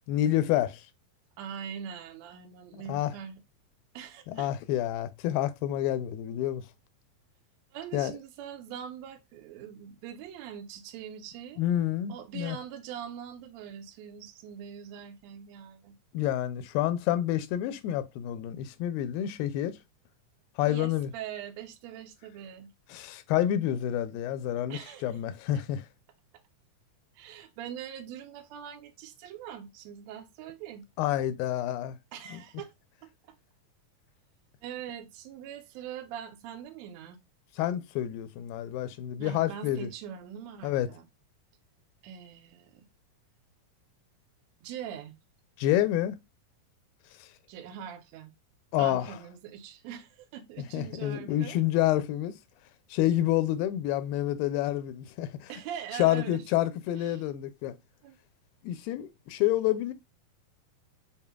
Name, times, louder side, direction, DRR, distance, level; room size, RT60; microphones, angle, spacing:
voice 1, 0.1-0.9 2.7-3.1 4.3-6.6 7.9-8.1 11.6-12.6 16.1-19.8 20.6-21.1 22.9-25.8 31.0-32.0 37.6-39.9 40.6-40.9 45.6-46.2 48.7-49.2 50.6-52.3 52.9-55.5 56.0-57.8 58.6-59.9, left 13 dB, 90° left, 2.3 m, -28 dB
voice 2, 1.4-3.4 3.9-4.5 7.7-11.6 12.1-16.0 20.6-22.7 24.7-25.2 25.5-25.6 27.1-30.9 32.1-32.7 33.0-33.4 34.6-37.2 39.2-41.1 42.0-42.9 44.6-45.1 47.5-48.3 48.8-51.6 55.5-56.4 57.0-57.2 58.0-58.2 58.8-58.9, right 9 dB, 80° right, 1.6 m, -42 dB
6.8 x 2.7 x 2.2 m
omnidirectional pair, 4.0 m